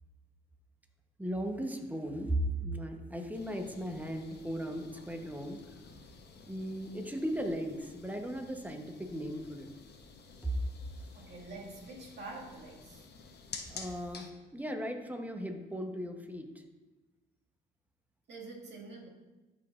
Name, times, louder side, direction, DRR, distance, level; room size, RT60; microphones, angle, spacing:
voice 1, 1.2-5.6 6.5-9.7 10.4-10.5 13.7-16.5, right 1 dB, 10° right, 4 dB, 0.9 m, -37 dB
sound 1, 3.3-14.3, left 5 dB, 55° left, 0.9 m, -51 dB
voice 2, 11.1-13.1 18.3-19.1, right 3 dB, 60° right, -3 dB, 1.9 m, -46 dB
12.0 x 5.0 x 2.5 m, 1.1 s
cardioid pair, 90°, 20 cm